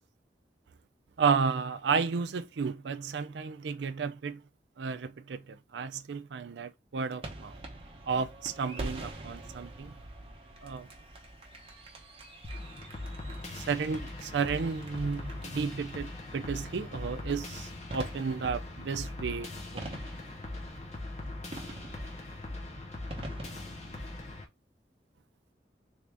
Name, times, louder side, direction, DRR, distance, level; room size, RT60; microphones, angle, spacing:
voice 1, 1.2-4.4 4.8-7.6 8.1-9.9 10.6-10.9 13.5-19.9, right 5 dB, 80° right, 0.4 m, -32 dB
fireworks climax middle Montreal Canada, 7.2-24.3, right 2 dB, 30° right, 0.8 m, -46 dB
sound 1, 12.4-24.4, left 2 dB, 40° left, 0.9 m, -41 dB
3.5 x 2.6 x 3.3 m
head